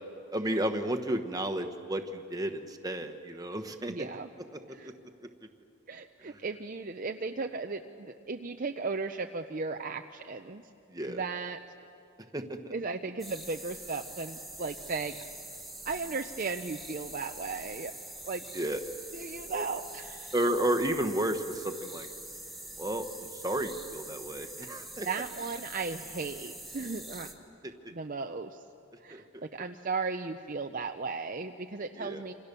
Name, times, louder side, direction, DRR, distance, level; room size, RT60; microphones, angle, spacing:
voice 1, 0.3-4.1 4.8-4.9 5.4-5.5 6.2-6.4 10.9-11.2 12.3-12.7 18.5-18.8 19.5-19.6 20.3-22.1 22.8-23.1 23.3-25.1 27.6-27.7 29.1-29.4 32.0-32.2, right 1 dB, 15° right, 6 dB, 1.2 m, -32 dB
voice 2, 3.9-4.3 4.7-4.9 5.9-10.6 11.1-11.6 12.7-15.2 15.8-17.9 18.2-18.4 19.1-20.3 24.6-24.7 25.0-27.3 27.9-28.6 29.0-32.3, right 4 dB, 40° right, 5 dB, 0.6 m, -36 dB
sound 1, 13.2-27.3, right 2 dB, ahead, 1.5 m, -45 dB
28.0 x 26.5 x 6.9 m, 2.6 s
head